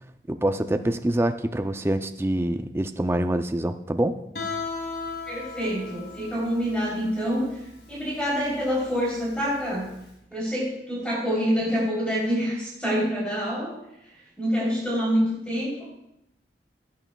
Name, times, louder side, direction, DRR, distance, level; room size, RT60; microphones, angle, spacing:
voice 1, 0.3-4.2, right 1 dB, 15° right, 8 dB, 0.4 m, -25 dB
Guitar, 4.3-10.0, left 4 dB, 65° left, 2.8 m, -37 dB
voice 2, 5.3-7.5 7.9-9.8 10.3-13.7 14.4-15.9, equal, 5° left, -6 dB, 3.4 m, -26 dB
15.5 x 9.2 x 2.3 m, 0.81 s
head